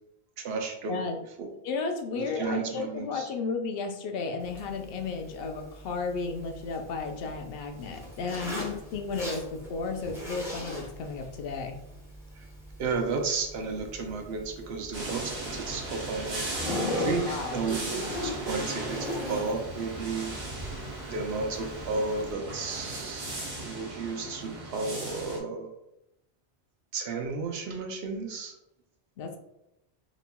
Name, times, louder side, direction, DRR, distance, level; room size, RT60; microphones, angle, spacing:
voice 1, 0.4-1.0 1.4-1.5 2.1-3.3 12.8-17.9 18.2-20.3 21.1-25.7 26.9-28.5, right 4 dB, 75° right, 4 dB, 0.9 m, -33 dB
voice 2, 1.6-11.8 17.3-17.7 29.2-29.4, left 4 dB, 70° left, 4 dB, 0.7 m, -33 dB
Zipper (clothing), 4.4-22.3, left 1 dB, 5° right, 0.9 m, -39 dB
sound 1, 14.9-25.4, right 2 dB, 45° right, 0.9 m, -37 dB
4.2 x 3.0 x 2.2 m, 0.85 s
omnidirectional pair, 1.1 m